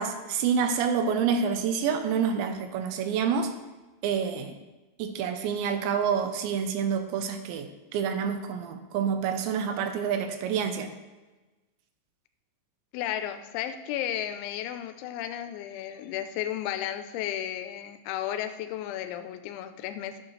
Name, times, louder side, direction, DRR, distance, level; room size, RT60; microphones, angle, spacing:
voice 1, 0.0-3.5 4.0-4.6 5.0-10.9, right 7 dB, 80° right, 7 dB, 2.9 m, -28 dB
voice 2, 12.9-20.2, left 11 dB, 85° left, 8 dB, 3.0 m, -33 dB
12.5 x 8.6 x 3.2 m, 1.2 s
omnidirectional pair, 5.3 m